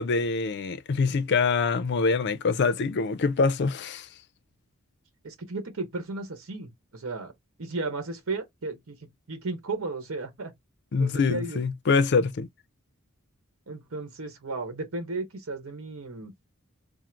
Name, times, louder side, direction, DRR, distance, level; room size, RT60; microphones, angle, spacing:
voice 1, 0.0-4.1 10.9-12.5, left 4 dB, 55° left, 0.5 m, -25 dB
voice 2, 5.2-7.3 7.6-10.5 11.0-11.6 13.7-16.3, right 3 dB, 70° right, 1.0 m, -34 dB
3.7 x 2.0 x 4.4 m
head